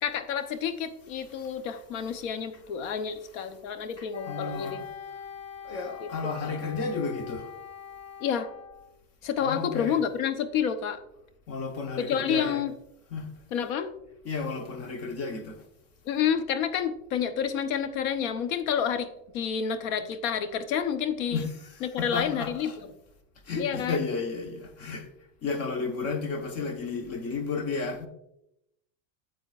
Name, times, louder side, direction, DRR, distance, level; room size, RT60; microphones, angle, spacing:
voice 1, 0.0-4.8 6.4-6.6 8.2-8.5 9.2-11.0 12.0-12.7 13.5-13.9 16.1-19.1 19.3-21.4 21.8-22.7 23.6-24.0, left 8 dB, 75° left, 1.0 m, -29 dB
voice 2, 4.0-4.9 5.6-7.5 9.4-10.0 11.5-12.6 13.1-13.3 14.2-15.6 21.3-22.8 23.5-25.1 25.4-28.1, left 4 dB, 35° left, 1.2 m, -33 dB
Wind instrument woodwind instrument, 4.1-8.9, left 7 dB, 15° left, 0.4 m, -43 dB
9.2 x 7.8 x 2.5 m
supercardioid pair, 130°, 41 cm